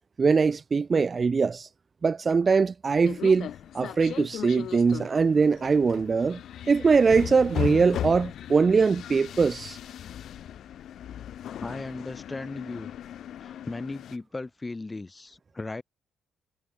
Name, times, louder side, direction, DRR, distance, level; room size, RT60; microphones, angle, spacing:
voice 1, 0.2-1.7 2.0-3.5 3.7-6.4 6.7-9.8, right 5 dB, 35° right, 0.4 m, -22 dB
sound 1, 3.0-14.2, left 10 dB, 70° left, 3.3 m, -37 dB
voice 2, 11.6-12.9 13.4-15.8, left 3 dB, 20° left, 6.6 m, -37 dB
cardioid pair, 90°, 0 cm